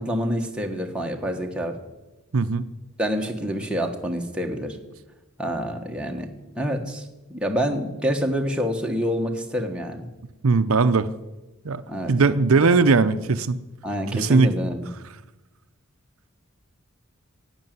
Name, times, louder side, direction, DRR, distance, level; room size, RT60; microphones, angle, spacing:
voice 1, 0.0-1.8 3.0-4.8 5.4-6.3 6.5-7.0 7.3-10.1 11.9-12.1 13.8-14.9, equal, 5° right, 1 dB, 1.4 m, -27 dB
voice 2, 2.3-2.6 10.4-11.1 11.6-11.8 12.1-13.6 14.1-14.5, right 4 dB, 75° right, 11 dB, 0.6 m, -19 dB
11.0 x 9.0 x 9.2 m, 1.1 s
head